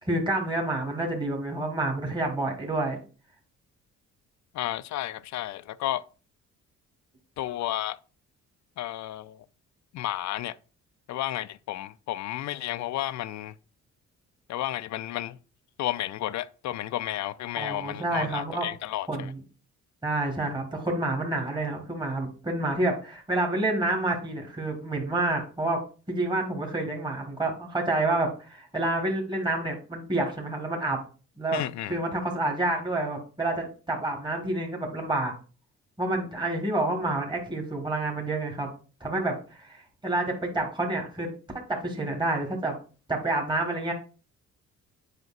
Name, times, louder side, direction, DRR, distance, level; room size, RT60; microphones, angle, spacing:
voice 1, 0.0-3.0 17.6-18.7 19.1-19.4 20.0-25.8 26.1-31.0 31.4-31.6 31.9-35.3 36.0-38.7 39.0-42.7 43.1-43.9, right 2 dB, 15° right, 1.5 m, -28 dB
voice 2, 4.5-6.0 7.4-8.0 8.8-9.4 9.9-10.5 11.1-13.5 14.5-15.4 15.8-19.3 31.5-32.0, left 14 dB, 65° left, 0.5 m, -32 dB
7.9 x 5.0 x 2.5 m
cardioid pair, 90°, 30 cm